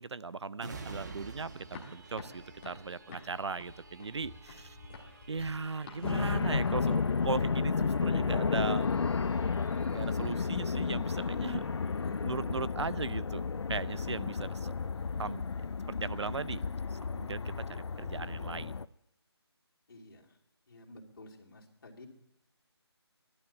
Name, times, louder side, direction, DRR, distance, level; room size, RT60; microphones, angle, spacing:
voice 1, 0.0-4.8 5.3-8.9 9.9-11.6 12.2-13.4 13.7-14.7 15.2-15.4 15.9-16.6 16.9-18.7, right 4 dB, 85° right, 18 dB, 0.6 m, -38 dB
sound 1, 0.6-13.9 14.4-14.5, right 4 dB, 40° right, 1.3 m, -52 dB
sound 2, 1.5-6.9, left 4 dB, 25° left, 1.4 m, -51 dB
sound 3, 6.0-18.9, left 5 dB, 80° left, 0.5 m, -32 dB
voice 2, 11.9-12.3 19.9-20.4 20.7-22.1, left 1 dB, 55° left, -2 dB, 3.0 m, -52 dB
15.0 x 12.0 x 7.4 m, 0.85 s
figure-of-eight pair, 170°, 14 cm